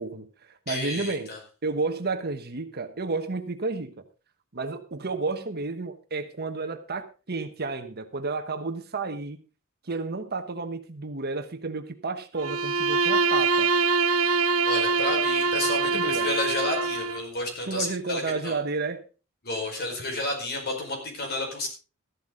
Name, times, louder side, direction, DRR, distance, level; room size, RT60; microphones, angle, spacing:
voice 1, 0.0-1.3 1.6-4.0 4.5-9.4 9.8-13.7 15.8-16.3 17.7-19.0, right 3 dB, 50° right, 1.2 m, -31 dB
voice 2, 0.7-1.4 14.6-18.5 19.4-21.7, left 2 dB, 50° left, 4.9 m, -31 dB
Bowed string instrument, 12.4-17.3, right 4 dB, 85° right, 0.8 m, -24 dB
14.0 x 11.5 x 3.8 m
head